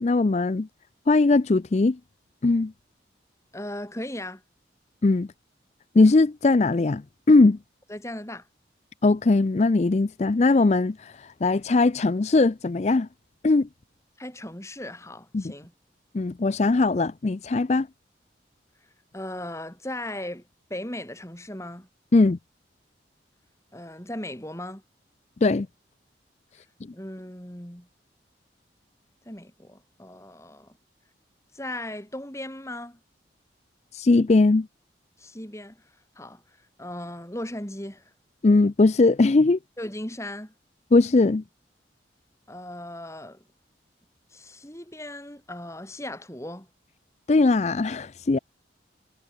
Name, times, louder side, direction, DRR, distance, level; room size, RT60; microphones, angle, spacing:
voice 1, 0.0-0.7 1.1-2.0 2.4-2.7 5.0-5.3 5.9-7.0 7.3-7.6 9.0-13.1 13.4-13.7 15.3-15.4 16.1-17.9 22.1-22.4 25.4-25.7 33.9-34.7 38.4-39.6 40.9-41.4 47.3-48.4, left 3 dB, 35° left, 0.4 m, -20 dB
voice 2, 3.5-4.4 7.9-8.5 14.2-15.7 19.1-20.4 20.7-21.9 23.7-24.8 26.9-27.9 29.3-30.7 31.5-33.0 35.2-35.8 36.2-36.4 36.8-38.0 39.8-40.5 42.5-43.4 44.3-46.7, left 1 dB, 15° left, 4.1 m, -37 dB
head